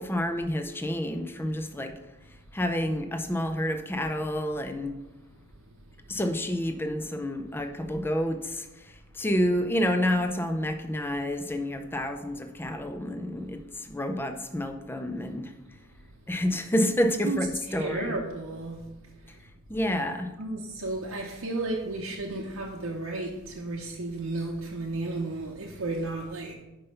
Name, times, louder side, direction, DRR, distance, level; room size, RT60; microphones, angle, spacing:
voice 1, 0.0-1.9 2.5-4.9 6.1-15.5 16.3-18.2 19.7-20.3, left 1 dB, 10° left, 0.4 m, -29 dB
voice 2, 17.7-18.8 20.4-26.5, right 2 dB, 80° right, 0.8 m, -33 dB
5.5 x 5.2 x 5.5 m
head